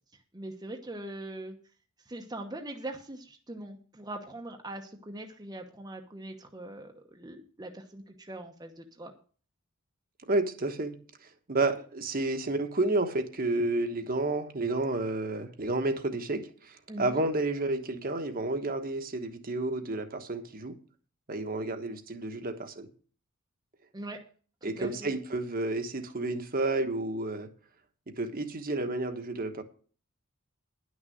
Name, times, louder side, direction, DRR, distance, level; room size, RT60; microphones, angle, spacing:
voice 1, 0.3-1.6 2.1-9.1 16.9-17.2 23.9-24.2 24.6-25.1, right 1 dB, 20° right, 1.0 m, -42 dB
voice 2, 10.3-11.0 11.5-20.8 21.3-22.9 24.6-27.5 28.2-29.6, right 2 dB, 45° right, 1.3 m, -31 dB
10.5 x 6.4 x 7.7 m
head